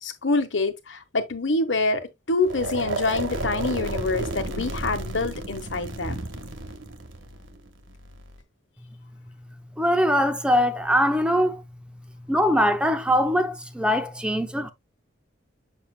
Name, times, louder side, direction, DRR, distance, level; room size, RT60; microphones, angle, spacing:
voice 1, 0.0-6.2, left 3 dB, 75° left, 1.3 m, -26 dB
sound 1, 2.4-8.4, right 1 dB, 85° right, 1.4 m, -32 dB
voice 2, 9.8-11.6 12.3-14.7, equal, 5° right, 0.6 m, -22 dB
7.2 x 6.4 x 2.2 m
head